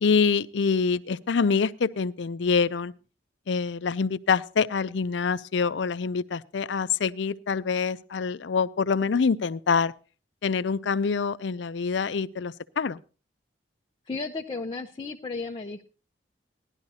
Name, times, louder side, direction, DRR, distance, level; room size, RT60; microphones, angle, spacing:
voice 1, 0.0-2.9 3.5-9.9 10.4-13.0, left 5 dB, 70° left, 16 dB, 0.5 m, -25 dB
voice 2, 14.1-15.8, left 3 dB, 30° left, 2 dB, 0.6 m, -34 dB
17.5 x 11.5 x 2.7 m, 0.35 s
head